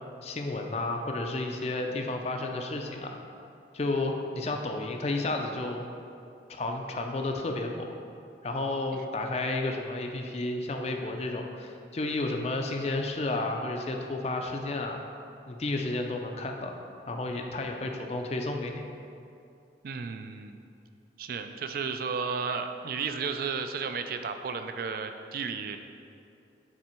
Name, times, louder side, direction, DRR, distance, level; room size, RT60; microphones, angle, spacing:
voice 1, 0.2-3.2 3.7-5.9 6.5-7.9 8.4-15.0 15.5-16.7 17.0-19.0, left 2 dB, 35° left, 3 dB, 0.4 m, -32 dB
voice 2, 19.8-20.6 21.2-25.8, right 5 dB, 55° right, 8 dB, 0.3 m, -33 dB
7.4 x 3.4 x 4.4 m, 2.5 s
head